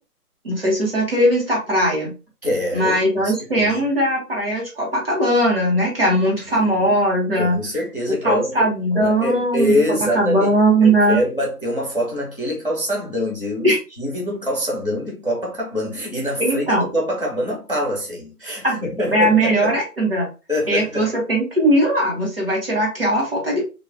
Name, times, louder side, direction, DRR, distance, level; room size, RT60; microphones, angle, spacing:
voice 1, 0.4-2.1 2.7-7.6 8.2-9.7 10.1-11.2 13.6-13.8 16.4-16.8 18.6-20.3 20.7-23.6, right 1 dB, 40° right, 0.9 m, -19 dB
voice 2, 2.4-3.9 6.5-7.0 7.4-8.7 9.0-10.6 10.8-19.8 20.5-21.1, equal, 35° left, 0.5 m, -25 dB
2.5 x 2.2 x 2.4 m
hypercardioid pair, 180°, 47 cm